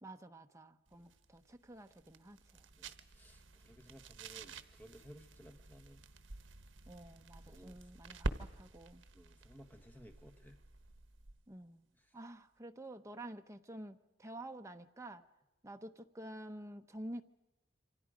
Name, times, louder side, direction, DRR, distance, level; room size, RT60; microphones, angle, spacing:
voice 1, 0.0-2.6 6.9-9.0 11.5-11.9 12.1-15.2 15.6-17.2, right 1 dB, 15° right, 5 dB, 0.8 m, -49 dB
sound 1, 0.9-11.5, right 2 dB, 75° right, 1.1 m, -48 dB
voice 2, 2.7-6.1 7.4-7.9 9.1-10.6 12.0-12.1, equal, 10° left, 7 dB, 1.4 m, -58 dB
27.5 x 25.0 x 5.1 m, 0.99 s
head